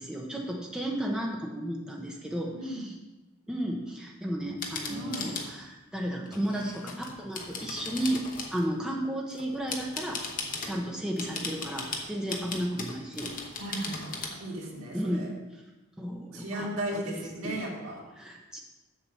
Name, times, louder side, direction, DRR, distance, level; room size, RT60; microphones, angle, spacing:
voice 1, 0.0-2.9 3.5-8.2 8.5-10.2 10.6-13.3 14.9-15.6 16.0-17.0 17.4-17.6 18.2-18.6, right 1 dB, 5° right, -2 dB, 0.9 m, -33 dB
voice 2, 2.5-2.9 4.9-5.3 13.6-14.1 14.4-15.3 16.3-18.0, right 1 dB, 85° right, -3 dB, 2.3 m, -35 dB
sound 1, 4.6-5.5 6.3-8.7 9.3-10.8 11.2-14.3, left 4 dB, 40° left, 1.0 m, -37 dB
7.3 x 4.8 x 7.1 m, 1.1 s
head